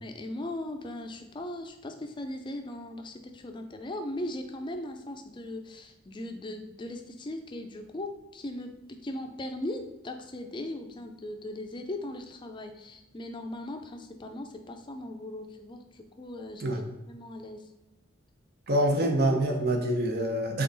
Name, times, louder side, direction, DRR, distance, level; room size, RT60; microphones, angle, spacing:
voice 1, 0.0-17.7, left 1 dB, 25° left, 5 dB, 0.4 m, -39 dB
voice 2, 18.7-20.6, right 1 dB, 50° right, 3 dB, 0.7 m, -26 dB
3.8 x 3.5 x 3.9 m, 0.98 s
head